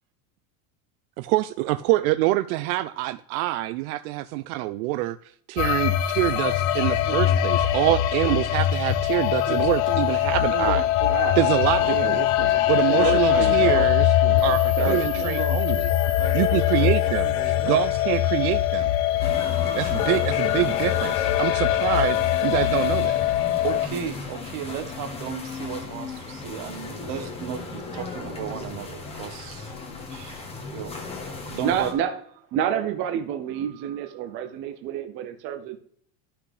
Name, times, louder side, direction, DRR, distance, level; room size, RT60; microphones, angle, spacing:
voice 1, 1.2-5.2 5.5-10.8 11.4-12.2 12.7-14.1 14.4-15.9 16.3-18.9 19.7-23.2, right 17 dB, 85° right, 0.5 m, -25 dB
sound 1, 5.6-23.9, left 13 dB, 45° left, 0.6 m, -22 dB
voice 2, 9.5-10.0 10.5-11.1 12.9-13.5 14.8-14.9 15.2-15.6 16.2-17.8 19.5-19.9 23.6-30.9 31.5-31.9, right 9 dB, 65° right, 1.4 m, -34 dB
voice 3, 11.1-11.5 11.8-15.3 31.6-32.1 32.5-35.8, right 9 dB, 30° right, 0.5 m, -29 dB
sound 2, 19.2-31.9, left 3 dB, 15° left, 1.2 m, -36 dB
11.5 x 5.9 x 3.3 m
cardioid pair, 170°, 43 cm